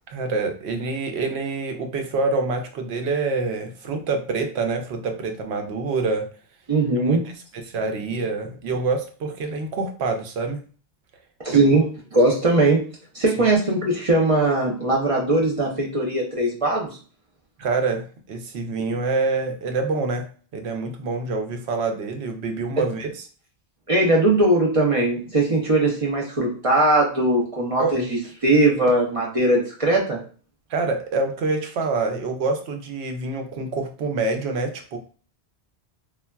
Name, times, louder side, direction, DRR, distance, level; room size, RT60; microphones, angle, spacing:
voice 1, 0.1-6.3 7.0-7.2 7.5-10.6 11.5-11.6 17.6-20.3 20.5-23.1 27.8-28.0 30.7-35.0, right 3 dB, 75° right, 4 dB, 0.8 m, -26 dB
voice 2, 6.7-7.2 11.4-11.9 12.1-12.9 13.1-17.0 22.8-22.9 23.9-30.2, right 2 dB, 40° right, -2 dB, 0.5 m, -20 dB
3.3 x 2.2 x 2.2 m, 0.40 s
omnidirectional pair, 1.1 m